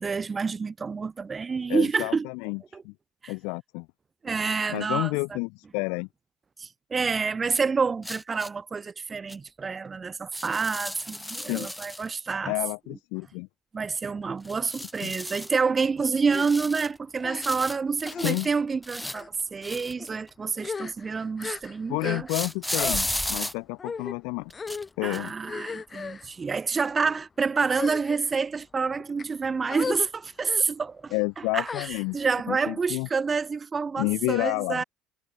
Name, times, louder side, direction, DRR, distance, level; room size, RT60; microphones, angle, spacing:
voice 1, 0.0-2.3 2.7-2.8 3.2-3.3 4.2-5.1 6.6-12.5 13.7-22.3 25.0-34.8, right 5 dB, 25° right, 2.4 m, -28 dB
voice 2, 1.7-2.9 3.3-3.9 4.7-6.1 11.2-11.7 12.4-13.5 15.0-15.1 18.1-18.5 21.9-24.5 25.0-25.3 31.1-32.2 32.5-33.1 34.0-34.8, left 33 dB, 85° left, 3.1 m, -30 dB
sound 1, 7.5-7.6 8.0-8.5 9.3-9.4 10.3-12.1 14.4-15.5 16.3-17.0 17.4-18.5 18.8-20.3 22.3-23.5 24.5-24.8 25.1-25.3, left 1 dB, 5° left, 5.5 m, -34 dB
sound 2, 16.3-16.5 17.2-17.7 18.1-18.3 19.0-19.3 20.0-20.2 20.6-22.5 22.7-23.0 23.8-24.2 24.5-24.9 25.4-26.3 27.0-27.2 27.7-28.4 29.0-29.2 29.7-30.1 30.4-30.6 31.7-32.3, left 5 dB, 30° left, 6.6 m, -36 dB
supercardioid pair, 100°, 0 cm